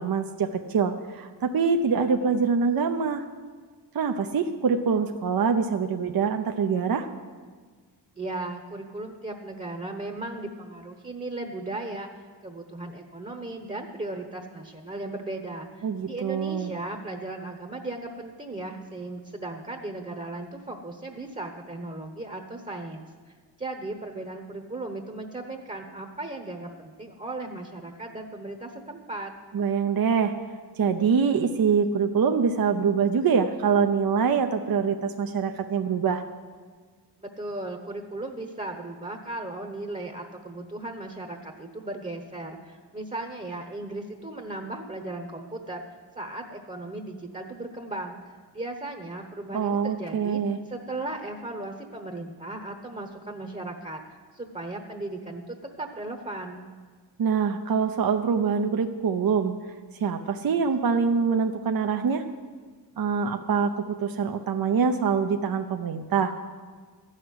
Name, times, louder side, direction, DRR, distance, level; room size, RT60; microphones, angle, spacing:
voice 1, 0.0-3.2 3.9-7.1 15.8-16.7 29.5-30.3 30.8-36.2 49.5-50.6 57.2-59.5 60.0-62.2 63.0-66.4, right 6 dB, 55° right, 6 dB, 0.7 m, -24 dB
voice 2, 8.2-12.1 12.4-23.1 23.6-29.3 37.2-45.8 46.2-48.2 48.5-50.4 50.7-54.0 54.3-56.7, right 2 dB, 20° right, 3 dB, 1.0 m, -36 dB
13.0 x 6.5 x 9.5 m, 1.5 s
wide cardioid pair, 95°, 41 cm